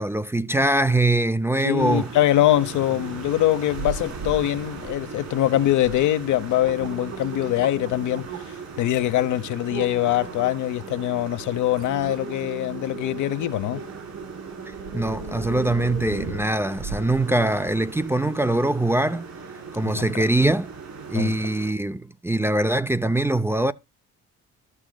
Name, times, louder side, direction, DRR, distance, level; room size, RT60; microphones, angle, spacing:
voice 1, 0.0-2.1 14.7-19.3 19.7-20.7 21.1-23.7, right 1 dB, 10° right, 0.4 m, -23 dB
voice 2, 1.6-13.8 19.8-20.1 21.1-21.3, left 13 dB, 80° left, 0.9 m, -23 dB
sound 1, 1.8-21.7, right 5 dB, 65° right, 4.0 m, -40 dB
sound 2, 3.7-4.4 4.8-5.3 5.8-6.0 6.4-8.6 9.1-9.3 9.7-17.2 17.7-17.8, right 4 dB, 90° right, 3.7 m, -36 dB
13.5 x 6.2 x 2.2 m
cardioid pair, 90°, 30 cm